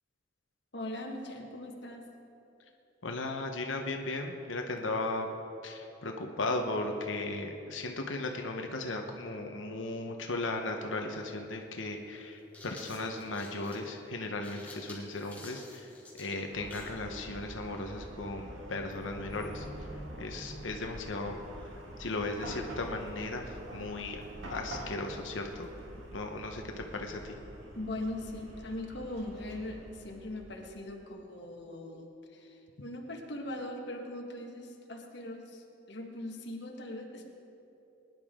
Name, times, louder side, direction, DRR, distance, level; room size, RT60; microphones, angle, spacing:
voice 1, 0.7-2.0 27.7-37.3, left 1 dB, 60° left, 1 dB, 1.5 m, -40 dB
voice 2, 3.0-5.3 5.6-15.9 16.2-19.7 20.2-21.7 22.0-23.5 23.7-24.2 24.5-25.7 26.1-27.4, left 2 dB, 85° left, 3 dB, 1.0 m, -36 dB
sound 1, 11.1-11.2 12.2-17.0, left 2 dB, 10° left, 2.5 m, -50 dB
Chatter / Car passing by / Traffic noise roadway noise, 16.5-30.8, right 1 dB, 90° right, 2.0 m, -46 dB
21.0 x 10.5 x 3.7 m, 2.9 s
head